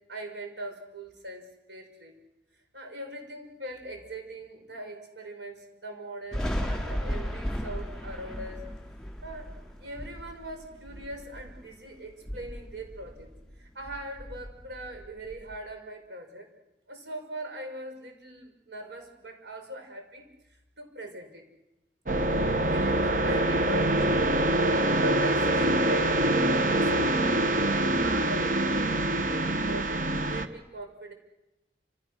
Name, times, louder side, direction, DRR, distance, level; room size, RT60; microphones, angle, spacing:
voice 1, 0.1-2.1 2.7-8.7 9.2-9.5 9.8-13.3 13.6-16.5 16.9-20.3 20.8-21.4 22.7-27.5 28.0-31.1, right 1 dB, 85° right, 4 dB, 5.9 m, -41 dB
Thunder, 6.3-11.8 12.1-13.6 13.8-15.6, equal, 5° left, 5.3 m, -35 dB
sound 1, 22.1-30.5, right 1 dB, 50° right, 1.3 m, -25 dB
30.0 x 27.5 x 6.5 m, 0.94 s
head